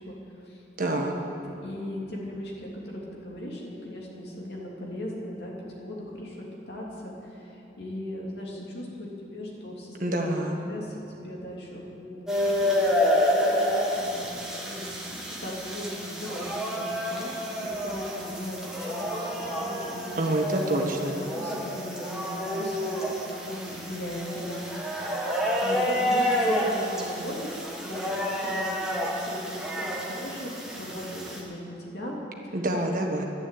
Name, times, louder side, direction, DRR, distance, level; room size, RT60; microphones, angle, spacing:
voice 1, 0.0-0.6 0.9-1.3 1.6-10.3 10.7-13.2 13.5-17.3 17.6-20.7 21.1-27.5 27.8-32.2 32.4-32.5, left 1 dB, 65° left, -3 dB, 3.0 m, -38 dB
voice 2, 0.8-1.1 10.0-10.7 20.2-21.2 32.5-33.2, right 1 dB, 50° right, 2 dB, 1.6 m, -27 dB
sound 1, 12.3-31.4, equal, 5° right, 2.0 m, -29 dB
11.5 x 11.5 x 8.5 m, 2.8 s
head